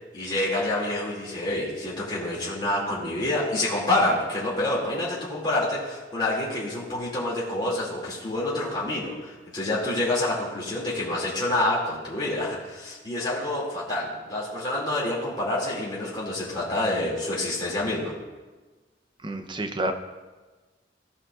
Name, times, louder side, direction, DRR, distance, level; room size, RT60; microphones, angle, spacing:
voice 1, 0.1-18.1, left 1 dB, 25° left, -7 dB, 2.2 m, -27 dB
voice 2, 19.2-19.9, right 1 dB, 25° right, 5 dB, 0.6 m, -29 dB
15.5 x 5.5 x 2.4 m, 1.3 s
head